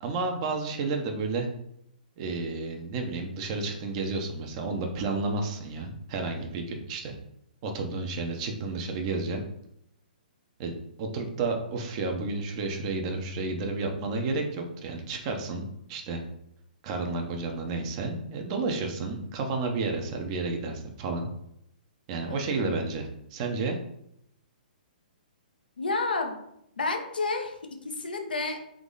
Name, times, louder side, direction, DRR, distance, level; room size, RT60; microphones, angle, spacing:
voice 1, 0.0-1.5 2.2-7.1 7.6-9.4 10.6-10.7 11.0-16.2 16.8-21.3 22.1-23.8, right 3 dB, 40° right, 3 dB, 0.8 m, -31 dB
voice 2, 22.3-22.7 25.8-26.4 26.8-27.5 27.8-28.6, left 3 dB, 80° left, 4 dB, 0.7 m, -30 dB
3.6 x 3.0 x 3.9 m, 0.77 s
figure-of-eight pair, 125°, 5 cm